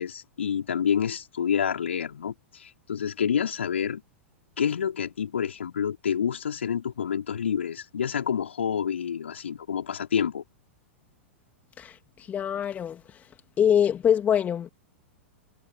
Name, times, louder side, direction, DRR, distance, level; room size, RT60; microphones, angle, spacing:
voice 1, 0.0-4.0 4.6-10.4, left 8 dB, 70° left, 5.1 m, -28 dB
voice 2, 11.8-13.2 13.6-14.7, left 9 dB, 25° left, 3.0 m, -24 dB
figure-of-eight pair, 95°, 7 cm